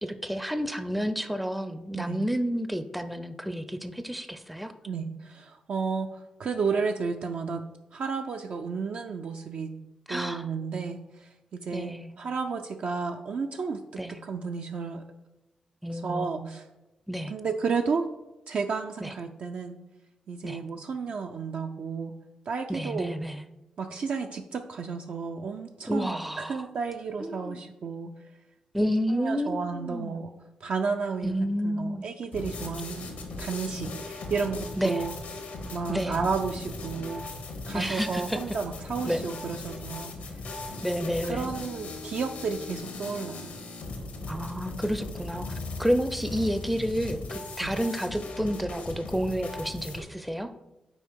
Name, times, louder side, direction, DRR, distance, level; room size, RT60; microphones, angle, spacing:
voice 1, 0.0-4.7 10.1-10.5 11.7-12.2 14.0-14.2 15.8-16.3 17.1-17.3 19.0-19.1 20.4-20.6 22.7-23.5 25.9-26.6 27.2-27.6 28.7-30.2 31.2-32.1 34.8-35.1 35.9-36.2 37.7-38.6 39.1-39.3 40.8-41.5 44.3-50.5, equal, ahead, 10 dB, 0.4 m, -30 dB
voice 2, 4.8-7.6 7.9-9.7 10.1-13.8 14.2-15.0 15.9-16.7 17.3-18.1 18.5-19.8 20.3-22.1 22.5-23.1 23.8-28.1 29.1-30.3 30.6-31.4 31.6-33.1 33.4-35.2 35.7-37.3 37.7-40.1 41.2-43.5 47.6-47.7, right 5 dB, 65° right, 4 dB, 0.4 m, -32 dB
sound 1, 32.3-50.0, left 2 dB, 90° left, 1.0 m, -38 dB
5.4 x 4.3 x 4.6 m, 0.98 s
cardioid pair, 60°, 2 cm